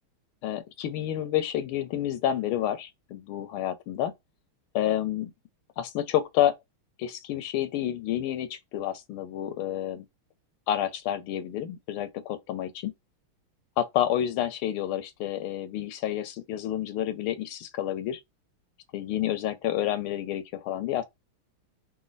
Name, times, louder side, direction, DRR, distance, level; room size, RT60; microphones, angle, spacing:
voice 1, 0.4-4.1 4.7-5.3 5.8-6.5 7.0-10.0 10.7-12.9 13.8-18.2 18.9-21.0, left 11 dB, 80° left, 1.5 m, -29 dB
4.1 x 2.2 x 3.9 m
omnidirectional pair, 2.3 m